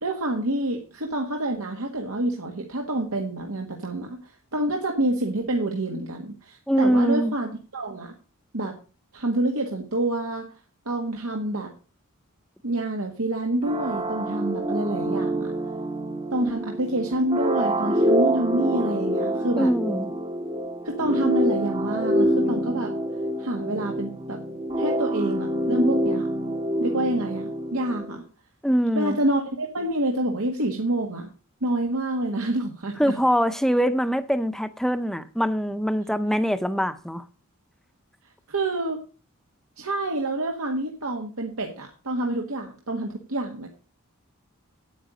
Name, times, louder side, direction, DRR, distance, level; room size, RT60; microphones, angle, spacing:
voice 1, 0.0-8.1 8.5-8.8 9.1-10.5 10.8-11.7 12.6-15.5 16.3-19.7 20.8-22.9 23.4-24.4 24.8-26.3 26.8-28.2 28.9-31.3 31.6-33.2 38.5-39.0 39.8-43.7, right 1 dB, 90° right, 1.7 m, -27 dB
voice 2, 6.7-7.3 19.6-20.1 28.6-29.2 33.0-37.2, equal, ahead, 0.7 m, -23 dB
sound 1, 13.6-28.2, equal, 25° right, 0.9 m, -26 dB
9.3 x 9.1 x 5.0 m
head